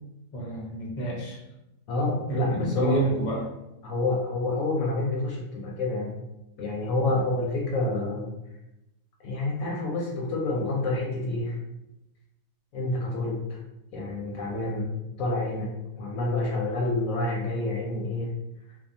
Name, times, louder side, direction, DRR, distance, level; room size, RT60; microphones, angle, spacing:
voice 1, 0.3-1.4 2.3-3.5, right 2 dB, 50° left, -4 dB, 0.4 m, -29 dB
voice 2, 1.9-3.0 3.8-6.1 6.6-8.3 9.2-11.6 12.7-13.6 13.9-15.7 16.0-18.3, left 2 dB, 70° left, -2 dB, 0.9 m, -28 dB
2.6 x 2.3 x 2.5 m, 0.93 s
omnidirectional pair, 1.8 m